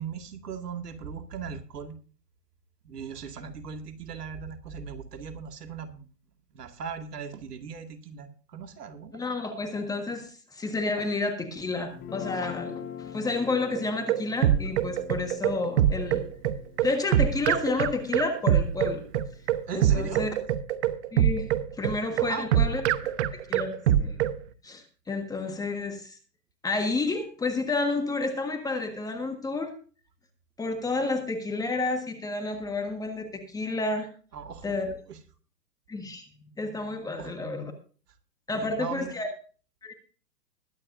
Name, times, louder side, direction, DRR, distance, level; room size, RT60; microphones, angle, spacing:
voice 1, 0.0-2.0 2.8-6.1 6.5-9.2 19.7-20.2 22.1-22.5 34.3-35.2 37.2-37.3 38.5-39.2, right 6 dB, 70° right, 6 dB, 2.3 m, -38 dB
voice 2, 9.1-16.3 16.8-19.0 19.7-20.3 21.1-21.5 21.8-24.2 24.6-26.2 26.6-29.7 30.6-34.1 34.6-34.9 35.9-36.3 36.6-37.7 38.5-39.3 39.8-39.9, left 3 dB, 5° left, 6 dB, 1.5 m, -30 dB
Guitar, 11.9-18.2, left 8 dB, 25° left, 2.3 m, -43 dB
sound 1, 13.7-24.4, right 10 dB, 45° right, 1.0 m, -24 dB
21.5 x 9.7 x 2.6 m, 0.38 s
hypercardioid pair, 135°, 49 cm